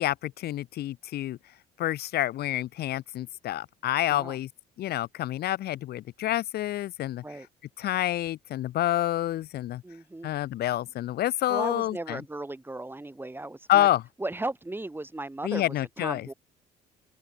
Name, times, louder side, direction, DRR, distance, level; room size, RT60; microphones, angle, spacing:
voice 1, 0.0-1.4 1.8-4.5 4.8-7.2 7.8-9.8 10.2-12.2 13.7-14.0 15.4-16.3, left 14 dB, 70° left, 3.2 m, -28 dB
voice 2, 9.8-10.3 11.5-13.9 14.2-16.3, right 2 dB, 10° right, 5.6 m, -36 dB
open air
supercardioid pair, 85°, 17 cm